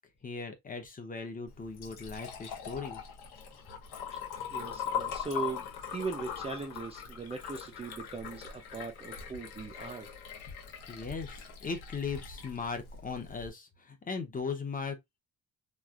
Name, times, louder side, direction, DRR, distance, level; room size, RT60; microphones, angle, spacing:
voice 1, 0.2-3.0 10.9-15.0, left 5 dB, 20° left, 0.7 m, -38 dB
Liquid, 1.5-13.5, left 7 dB, 75° left, 1.0 m, -41 dB
voice 2, 4.5-5.6 5.9-10.1, right 3 dB, 15° right, 0.4 m, -39 dB
3.2 x 2.4 x 2.4 m
cardioid pair, 140°, 38 cm